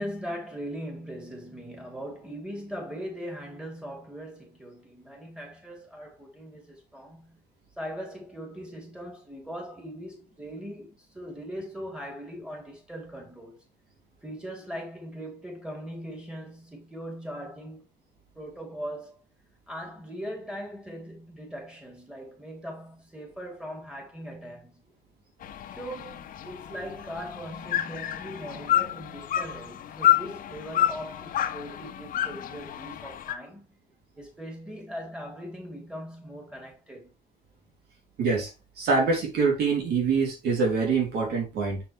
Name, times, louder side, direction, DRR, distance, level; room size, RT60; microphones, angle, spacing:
voice 1, 0.0-7.4 7.8-13.7 14.2-17.9 18.3-19.2 19.7-24.8 25.7-33.7 34.2-37.1, equal, 5° right, 4.1 m, -40 dB
sound 1, 25.4-33.3, left 12 dB, 55° left, 1.1 m, -29 dB
voice 2, 38.2-38.5 38.8-41.8, right 4 dB, 70° right, 3.8 m, -25 dB
7.0 x 6.7 x 3.6 m
cardioid pair, 110°, 17 cm